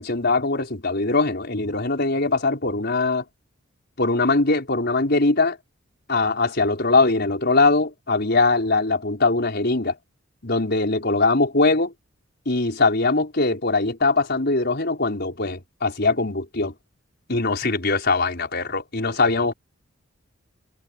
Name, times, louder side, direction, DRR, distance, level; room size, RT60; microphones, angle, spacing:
voice 1, 0.0-3.2 4.0-5.6 6.1-10.0 10.4-11.9 12.4-16.7 17.3-19.5, left 3 dB, 55° left, 4.9 m, -21 dB
head